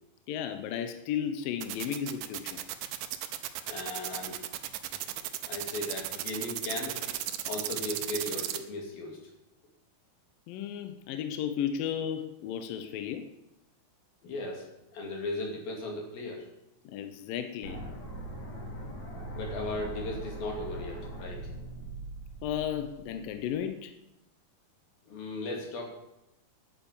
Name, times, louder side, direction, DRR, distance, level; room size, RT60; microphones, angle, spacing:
voice 1, 0.3-2.6 10.5-13.3 16.9-17.8 22.4-23.9, left 9 dB, 75° left, 8 dB, 2.1 m, -34 dB
sound 1, 1.6-8.6, right 13 dB, 85° right, 1.9 m, -35 dB
voice 2, 3.7-4.4 5.5-7.2 7.4-9.2 14.2-14.7 14.9-16.5 19.3-21.5 25.1-25.9, left 2 dB, 60° left, 0 dB, 4.2 m, -37 dB
sound 2, 17.6-23.6, right 2 dB, 45° left, 4.5 m, -41 dB
10.5 x 9.0 x 7.1 m, 0.91 s
omnidirectional pair, 4.8 m